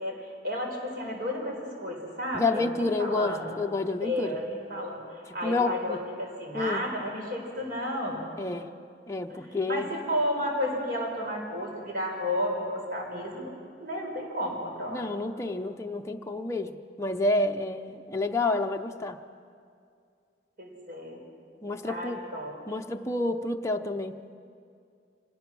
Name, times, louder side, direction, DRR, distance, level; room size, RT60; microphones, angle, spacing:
voice 1, 0.0-3.5 4.0-8.2 9.3-13.5 13.8-15.1 20.6-21.2 21.9-22.5, equal, 55° right, 0 dB, 4.7 m, -32 dB
voice 2, 2.3-4.4 5.4-6.0 6.5-6.8 8.4-8.7 9.1-9.9 14.9-19.2 21.6-22.2 22.7-24.2, left 2 dB, 15° left, 3 dB, 0.6 m, -29 dB
25.0 x 18.5 x 6.1 m, 2.4 s
head